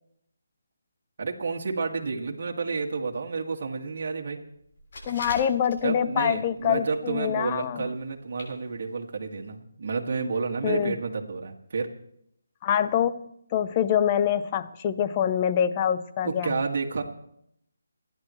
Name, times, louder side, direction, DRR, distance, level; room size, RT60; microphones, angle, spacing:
voice 1, 1.2-4.4 5.8-11.9 16.2-17.0, right 4 dB, 50° right, 1 dB, 2.2 m, -30 dB
sound 1, 4.7-6.2 6.5-7.0 7.3-7.4 8.1-8.2 8.4-8.5 8.9-9.0 9.4-9.5, left 1 dB, 45° left, 7.4 m, -41 dB
voice 2, 5.0-7.9 10.6-11.0 12.6-16.6, left 9 dB, 25° left, 12 dB, 0.7 m, -25 dB
29.5 x 11.0 x 3.2 m, 0.75 s
figure-of-eight pair, 160°, 0 cm